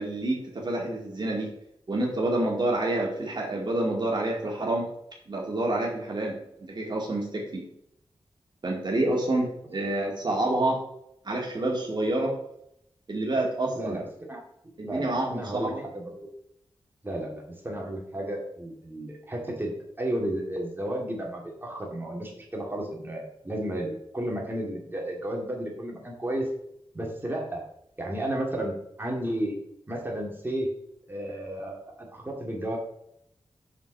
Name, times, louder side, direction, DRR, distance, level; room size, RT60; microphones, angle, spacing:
voice 1, 0.0-1.5 1.9-4.9 5.3-7.6 8.6-10.8 11.2-12.3 13.1-14.0 14.8-15.8, right 2 dB, 45° right, -2 dB, 2.1 m, -28 dB
voice 2, 13.7-14.4 14.8-16.1 17.0-26.5 26.9-27.6 28.0-29.6 29.9-30.7 31.1-31.8 32.1-32.8, right 1 dB, 20° right, -1 dB, 2.2 m, -32 dB
7.3 x 4.8 x 6.5 m, 0.75 s
wide cardioid pair, 95°, 10 cm